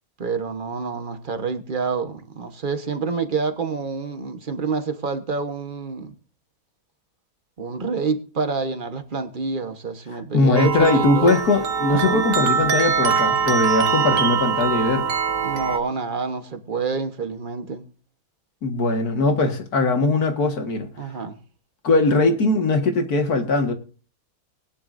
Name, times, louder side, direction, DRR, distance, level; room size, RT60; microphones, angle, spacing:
voice 1, 0.2-6.1 7.6-11.4 11.9-12.2 15.4-17.8 21.0-21.4, right 4 dB, 35° right, 8 dB, 1.3 m, -28 dB
voice 2, 10.3-15.1 18.6-20.9 21.8-23.7, left 3 dB, 90° left, 5 dB, 2.2 m, -20 dB
sound 1, 10.5-15.8, right 6 dB, 65° right, 1.4 m, -22 dB
20.0 x 10.5 x 2.6 m, 0.38 s
omnidirectional pair, 1.6 m